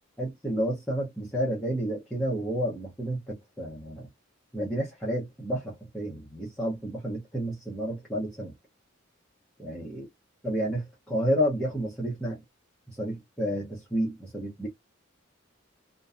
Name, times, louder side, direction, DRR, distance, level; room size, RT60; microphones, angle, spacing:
voice 1, 0.2-4.1 4.5-8.5 9.6-10.1 10.4-12.4 12.9-14.7, equal, 5° left, 0.7 m, -30 dB
2.6 x 2.2 x 2.4 m
head